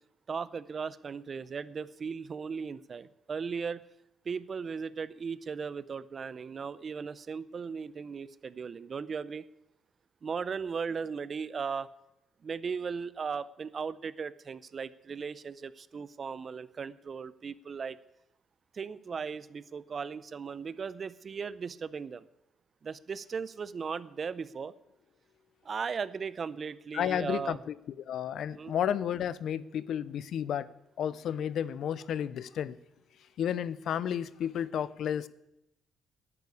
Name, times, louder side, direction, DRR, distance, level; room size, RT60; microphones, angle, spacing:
voice 1, 0.3-3.8 4.2-9.4 10.2-11.9 12.4-18.0 18.7-22.2 22.8-24.7 25.6-27.6 28.5-28.7, right 5 dB, 45° right, 17 dB, 0.6 m, -37 dB
voice 2, 26.9-30.7 31.0-32.8 33.4-35.3, left 9 dB, 70° left, 18 dB, 0.6 m, -32 dB
11.0 x 10.0 x 8.4 m, 0.90 s
cardioid pair, 90°, 0 cm